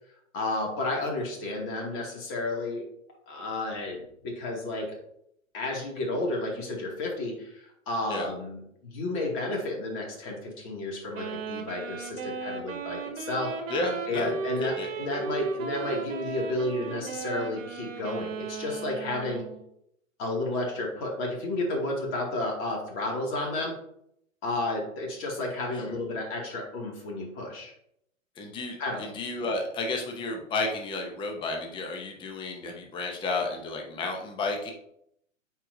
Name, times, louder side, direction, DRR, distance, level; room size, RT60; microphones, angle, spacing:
voice 1, 0.3-2.8 3.3-4.9 5.5-13.5 14.1-19.4 20.2-23.7 24.4-27.7 28.8-29.0, left 2 dB, 30° left, -1 dB, 2.3 m, -32 dB
Wind instrument woodwind instrument, 11.1-19.6, right 5 dB, 50° right, 1.4 m, -36 dB
voice 2, 13.7-14.3 14.8-14.9 28.4-34.7, left 3 dB, 10° left, 2 dB, 0.8 m, -32 dB
8.8 x 4.6 x 2.7 m, 0.74 s
hypercardioid pair, 125°, 40 cm